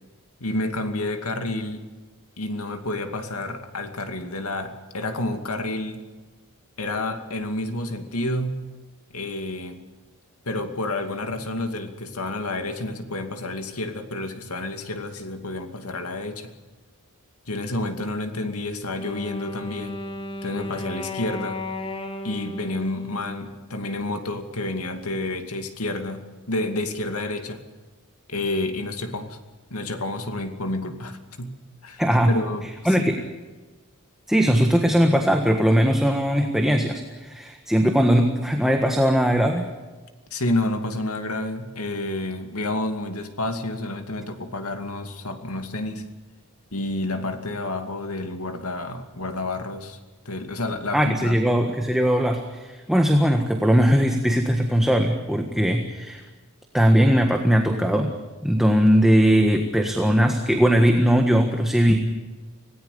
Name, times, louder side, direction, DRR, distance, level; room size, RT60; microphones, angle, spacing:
voice 1, 0.4-1.8 2.4-6.0 6.8-8.6 9.1-9.8 10.5-16.5 17.5-20.0 20.4-21.6 22.2-27.6 28.3-29.4 29.7-31.6 31.8-33.1 40.3-46.0 46.7-50.0 50.3-51.4, left 2 dB, 80° left, 6 dB, 2.5 m, -29 dB
Wind instrument woodwind instrument, 19.0-24.0, left 1 dB, 25° left, 1.5 m, -34 dB
voice 2, 32.0-32.3 32.8-33.2 34.3-39.7 50.9-56.2 56.7-58.2 58.4-62.0, equal, ahead, 3 dB, 1.5 m, -19 dB
26.0 x 18.5 x 6.9 m, 1.3 s
head